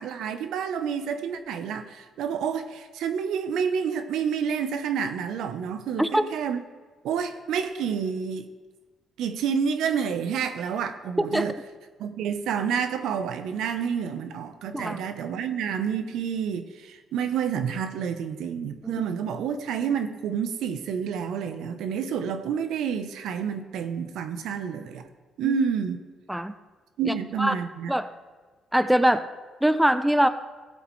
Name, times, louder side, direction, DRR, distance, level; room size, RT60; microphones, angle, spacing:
voice 1, 0.0-6.6 7.0-8.5 9.2-11.5 12.0-25.1 25.4-26.1 27.0-27.9, right 7 dB, 85° right, 9 dB, 0.7 m, -29 dB
voice 2, 27.0-27.5 27.9-28.1 28.7-29.3 29.6-30.3, right 1 dB, 5° right, 11 dB, 0.4 m, -23 dB
15.5 x 8.0 x 3.2 m, 1.3 s
cardioid pair, 90°, 0 cm